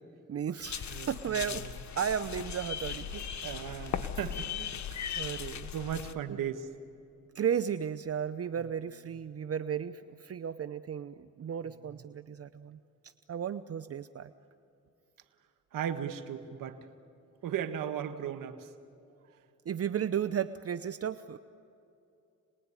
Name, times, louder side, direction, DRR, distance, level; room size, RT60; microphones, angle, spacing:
voice 1, 0.3-1.7 2.0-3.1 5.1-5.7 6.3-6.4 7.3-14.3 19.7-21.4, right 8 dB, 50° right, 12 dB, 0.8 m, -34 dB
sound 1, 0.6-6.1, left 8 dB, 60° left, 1.4 m, -38 dB
voice 2, 0.9-1.6 3.1-5.1 5.7-6.7 11.6-11.8 15.7-16.8 17.4-18.7, right 9 dB, 80° right, 7 dB, 1.7 m, -37 dB
28.0 x 20.5 x 9.9 m, 2.7 s
cardioid pair, 75°, 32 cm